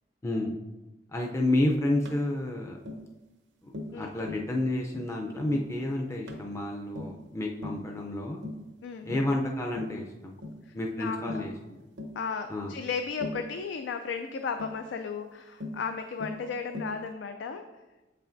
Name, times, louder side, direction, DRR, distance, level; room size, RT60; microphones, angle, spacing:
voice 1, 0.2-0.5 1.1-2.8 3.6-8.4 9.0-10.3 10.7-11.8 12.5-12.7, left 1 dB, 15° left, 0 dB, 0.4 m, -30 dB
Tap, 2.0-2.2 2.9-3.1 3.7-4.0 4.3-4.5 4.9-5.1 5.5-5.7 6.3-6.5 6.9-7.2 7.6-7.9 8.4-8.7 9.1-9.3 9.8-10.0 10.4-10.6 11.3-11.5 12.0-12.2 13.2-13.5 14.6-14.8 15.6-15.8 16.2-16.4 16.7-17.0, left 2 dB, 90° right, 0.8 m, -39 dB
voice 2, 8.8-9.3 10.7-11.5 12.1-17.7, left 5 dB, 85° left, 7 dB, 0.4 m, -35 dB
7.2 x 5.5 x 2.5 m, 1.1 s
head